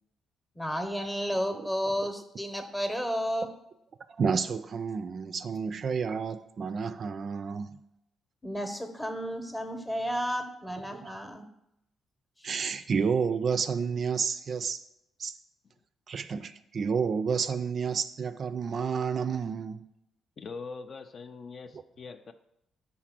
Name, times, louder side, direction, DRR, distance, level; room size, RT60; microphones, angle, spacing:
voice 1, 0.6-3.5 8.4-11.4 12.7-12.8, equal, 10° left, 0.8 m, -32 dB
voice 2, 4.1-7.8 10.9-11.2 12.4-14.8 15.2-15.4 16.1-19.9, right 6 dB, 50° right, 0.3 m, -30 dB
voice 3, 20.4-22.3, left 4 dB, 45° left, 0.4 m, -42 dB
4.8 x 4.1 x 5.9 m
cardioid pair, 90°, 0 cm